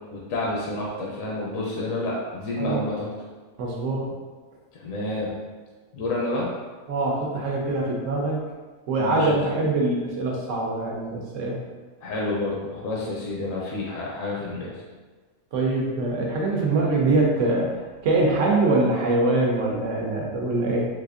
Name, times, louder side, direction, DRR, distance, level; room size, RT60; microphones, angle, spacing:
voice 1, 0.1-3.1 4.7-5.3 5.9-6.5 9.0-9.6 12.0-14.8, left 2 dB, 70° left, -4 dB, 0.9 m, -29 dB
voice 2, 3.6-4.1 6.9-8.4 8.9-11.6 15.5-17.8 18.0-20.9, right 2 dB, 65° right, -2 dB, 1.0 m, -23 dB
4.0 x 2.5 x 2.4 m, 1.4 s
omnidirectional pair, 1.5 m